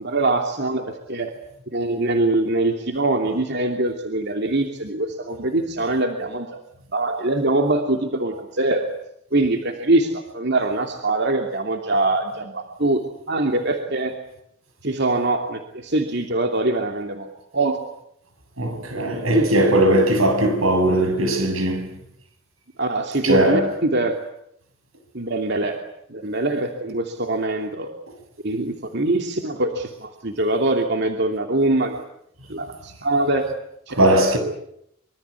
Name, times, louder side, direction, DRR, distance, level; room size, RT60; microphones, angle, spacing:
voice 1, 0.0-1.3 1.7-6.6 6.9-8.9 9.3-13.0 13.3-14.1 14.8-17.3 17.5-17.8 19.3-19.5 22.8-24.1 25.1-25.8 26.1-27.9 28.4-32.0 32.5-33.5 33.9-34.4, right 2 dB, 55° right, 2.8 m, -23 dB
voice 2, 18.6-21.9 23.2-23.7 34.0-34.4, right 1 dB, 90° right, 7.5 m, -19 dB
26.0 x 24.0 x 8.4 m
head